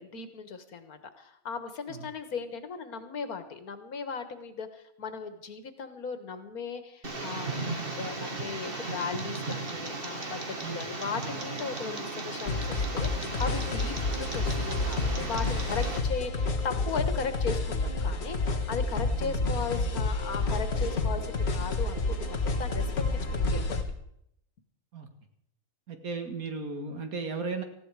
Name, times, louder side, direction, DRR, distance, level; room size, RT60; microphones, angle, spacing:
voice 1, 0.0-22.9 23.2-23.9, left 5 dB, 85° left, 9 dB, 2.0 m, -37 dB
Tick, 7.0-16.0, right 3 dB, 40° right, 2.0 m, -36 dB
sound 1, 12.5-23.8, left 3 dB, 45° left, 1.7 m, -29 dB
voice 2, 25.9-27.6, right 4 dB, 75° right, 6 dB, 2.3 m, -35 dB
19.0 x 15.0 x 4.9 m, 0.75 s
omnidirectional pair, 1.5 m